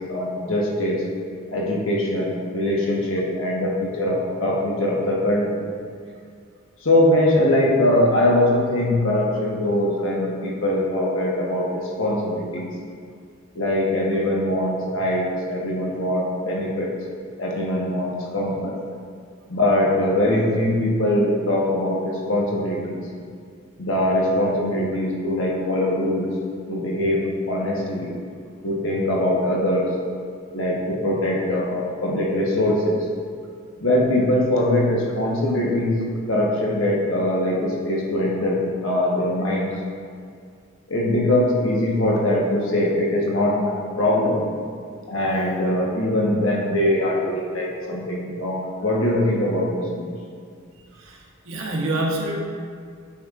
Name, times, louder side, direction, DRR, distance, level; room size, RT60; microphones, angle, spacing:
voice 1, 0.1-1.1 1.5-5.6 6.8-12.7 13.5-16.9 17.4-18.8 19.5-23.0 23.8-26.3 26.7-28.1 28.6-29.9 30.5-33.0 33.8-36.0 36.3-39.7 40.9-44.4 45.1-50.1, left 1 dB, 70° left, -3 dB, 1.2 m, -22 dB
voice 2, 50.9-52.4, right 1 dB, 75° right, -2 dB, 1.1 m, -27 dB
8.4 x 5.6 x 2.5 m, 2.2 s
head